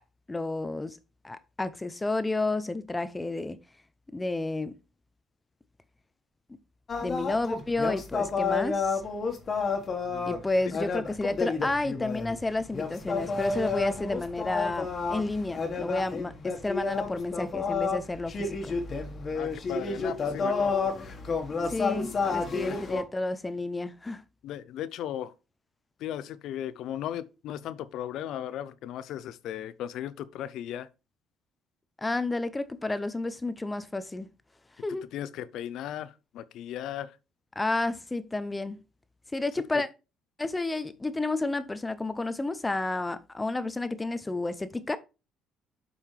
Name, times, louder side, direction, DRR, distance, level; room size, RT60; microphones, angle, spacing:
voice 1, 0.3-1.0 1.2-3.6 4.1-4.8 7.0-9.0 10.3-18.8 21.7-24.2 32.0-34.3 34.8-35.0 37.6-38.8 39.3-39.9 40.4-45.0, left 2 dB, 15° left, 0.5 m, -31 dB
sound 1, 6.9-23.0, left 4 dB, 35° left, 1.5 m, -30 dB
voice 2, 19.3-20.8 22.6-22.8 24.4-25.3 26.0-30.9 35.1-37.2 39.7-39.8, left 11 dB, 70° left, 0.5 m, -36 dB
7.3 x 5.4 x 3.3 m
cardioid pair, 110°, 0 cm